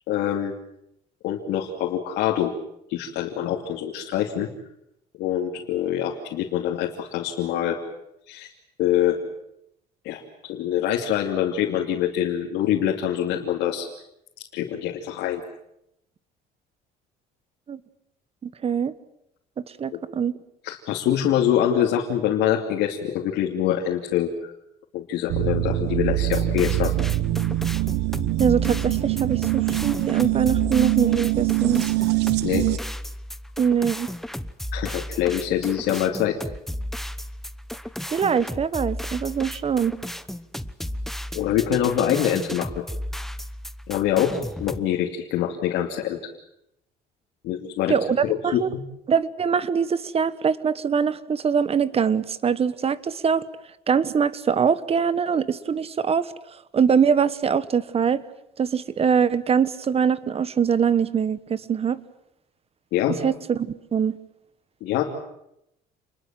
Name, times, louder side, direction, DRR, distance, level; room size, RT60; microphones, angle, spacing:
voice 1, 0.1-0.5 1.2-2.5 2.9-4.5 5.2-7.8 8.3-8.5 8.8-9.2 10.0-13.9 14.5-15.4 19.9-20.0 20.6-24.3 24.9-26.9 32.4-32.7 34.7-36.4 41.3-42.8 43.9-46.2 47.4-47.9 48.2-48.8 62.9-63.2 64.8-65.0, left 10 dB, 85° left, 0 dB, 2.8 m, -25 dB
voice 2, 18.4-18.9 19.8-20.4 28.4-31.8 33.6-34.1 38.1-39.9 47.9-48.7 49.1-53.4 53.9-56.3 56.7-58.2 58.6-62.0 63.2-64.2, right 7 dB, 35° right, 16 dB, 1.3 m, -23 dB
sound 1, 25.3-32.8, right 17 dB, 85° right, 0.9 m, -24 dB
sound 2, 26.2-44.8, left 1 dB, ahead, 1.0 m, -34 dB
28.5 x 21.5 x 7.6 m, 0.82 s
cardioid pair, 110°, 17 cm